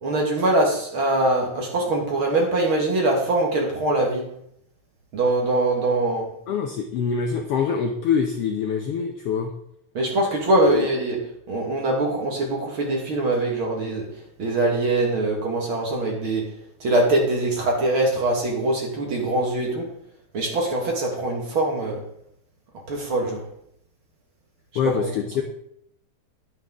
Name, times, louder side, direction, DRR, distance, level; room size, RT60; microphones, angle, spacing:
voice 1, 0.0-4.3 5.1-6.3 9.9-11.2 11.5-14.1 14.4-16.5 16.8-19.9 20.3-22.0 22.9-23.5 24.8-25.1, right 2 dB, 50° right, 0 dB, 2.1 m, -23 dB
voice 2, 6.5-9.5 10.6-10.9 24.7-25.4, left 6 dB, 70° left, 3 dB, 1.4 m, -25 dB
10.5 x 9.3 x 3.6 m, 0.73 s
omnidirectional pair, 3.5 m